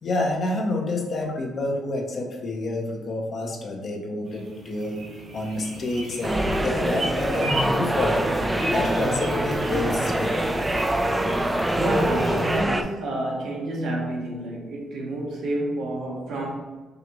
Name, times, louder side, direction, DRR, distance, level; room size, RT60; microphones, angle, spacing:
voice 1, 0.0-5.0 5.3-8.3 8.7-10.3, left 2 dB, 45° left, 1 dB, 0.8 m, -28 dB
sound 1, 4.3-12.6, right 1 dB, 55° right, 0.9 m, -36 dB
sound 2, 6.2-12.8, right 1 dB, 10° right, 0.3 m, -24 dB
voice 2, 11.8-16.5, right 1 dB, 75° right, -2 dB, 1.1 m, -29 dB
4.9 x 2.5 x 3.0 m, 1.3 s
cardioid pair, 110°, 0 cm